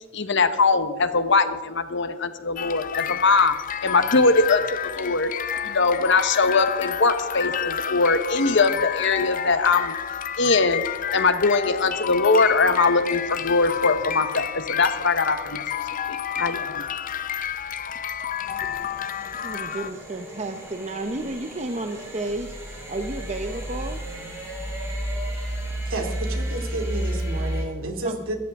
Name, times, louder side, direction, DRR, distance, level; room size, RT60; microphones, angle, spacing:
voice 1, 0.1-3.5 3.8-5.3 5.6-9.9 10.4-10.8 11.1-15.6 16.1-16.9, left 3 dB, 55° left, 10 dB, 1.0 m, -21 dB
sound 1, 2.6-19.9, left 8 dB, 40° left, 0.6 m, -30 dB
sound 2, 13.2-27.6, right 1 dB, 15° right, 4.8 m, -33 dB
voice 2, 19.4-24.0 25.7-25.8 28.0-28.2, right 2 dB, 30° right, 6 dB, 0.7 m, -32 dB
voice 3, 25.9-28.4, right 2 dB, 70° right, 3 dB, 2.5 m, -31 dB
23.0 x 14.0 x 3.6 m, 1.3 s
head